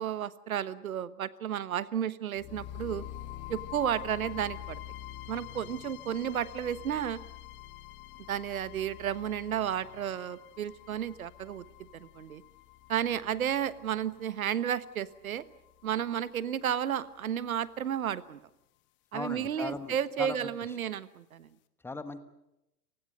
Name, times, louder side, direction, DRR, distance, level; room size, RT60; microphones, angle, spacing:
voice 1, 0.0-3.0 3.5-4.8 5.3-7.2 8.3-11.6 11.9-12.4 12.9-15.4 15.8-18.4 19.1-21.5, right 9 dB, 60° right, 16 dB, 1.3 m, -32 dB
sound 1, 2.4-16.4, left 13 dB, 25° left, 1.2 m, -46 dB
voice 2, 19.1-20.4 21.8-22.2, left 3 dB, 5° left, 11 dB, 1.3 m, -38 dB
30.0 x 20.0 x 6.5 m, 0.88 s
figure-of-eight pair, 110°, 47 cm